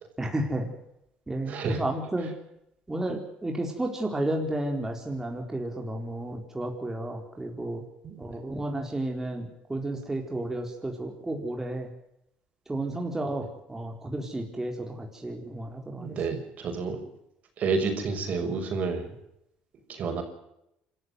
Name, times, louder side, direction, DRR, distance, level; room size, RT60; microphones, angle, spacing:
voice 1, 0.2-0.7 1.3-2.3 2.9-7.8 8.2-11.9 12.7-13.4 13.7-14.9 15.2-16.4, right 1 dB, 15° right, 2 dB, 4.2 m, -32 dB
voice 2, 1.5-1.8 8.0-8.2 16.0-17.0 17.6-19.1 19.9-20.2, right 4 dB, 50° right, 5 dB, 6.3 m, -29 dB
27.0 x 14.0 x 7.8 m, 0.81 s
supercardioid pair, 95°, 3 cm